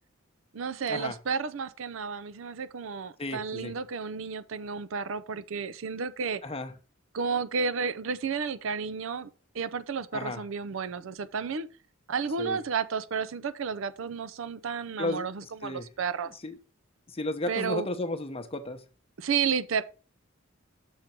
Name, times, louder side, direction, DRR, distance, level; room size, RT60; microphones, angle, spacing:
voice 1, 0.5-6.4 7.1-9.3 9.5-11.7 12.1-16.3 17.5-17.9 19.2-19.8, right 6 dB, 70° right, 0.5 m, -32 dB
voice 2, 3.2-3.7 6.4-6.7 10.1-10.4 12.4-12.6 15.0-15.9 16.4-16.6 17.1-18.8, left 2 dB, 30° left, 0.8 m, -34 dB
6.5 x 4.5 x 5.8 m
head